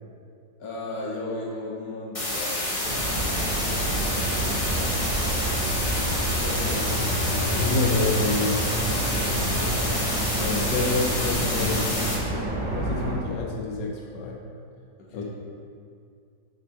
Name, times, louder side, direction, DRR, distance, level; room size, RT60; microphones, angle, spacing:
voice 1, 0.6-3.4 4.4-6.0 6.3-6.9 7.3-8.5 15.0-15.2, left 2 dB, 60° left, -4 dB, 1.6 m, -37 dB
sound 1, 2.1-12.1, left 1 dB, 25° left, 0.7 m, -28 dB
sound 2, 2.8-13.1, right 1 dB, 25° right, 1.5 m, -28 dB
voice 2, 6.6-7.0 7.5-8.7 9.3-9.7 10.4-11.9 12.7-14.4 15.1-15.2, left 3 dB, 90° left, 0 dB, 1.4 m, -28 dB
6.1 x 5.3 x 4.0 m, 2.3 s
omnidirectional pair, 1.9 m